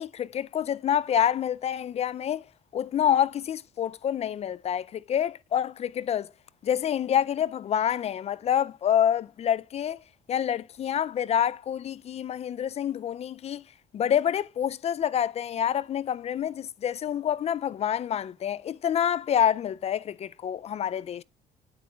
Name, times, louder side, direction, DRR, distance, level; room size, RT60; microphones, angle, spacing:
voice 1, 0.0-2.4 2.7-6.3 6.6-10.0 10.3-13.6 13.9-21.2, left 9 dB, 40° left, 0.4 m, -27 dB
8.4 x 7.9 x 2.3 m
cardioid pair, 110°, 17 cm